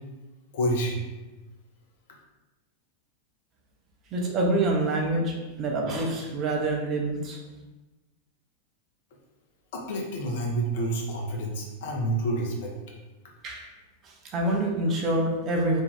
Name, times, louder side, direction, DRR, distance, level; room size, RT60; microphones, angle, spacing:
voice 1, 0.5-1.0 9.7-12.7, right 1 dB, 55° left, -1 dB, 0.6 m, -28 dB
voice 2, 4.1-7.4 13.4-13.7 14.0-15.8, right 2 dB, 30° right, 0 dB, 0.6 m, -26 dB
2.6 x 2.2 x 3.3 m, 1.1 s
figure-of-eight pair, 90°, 0 cm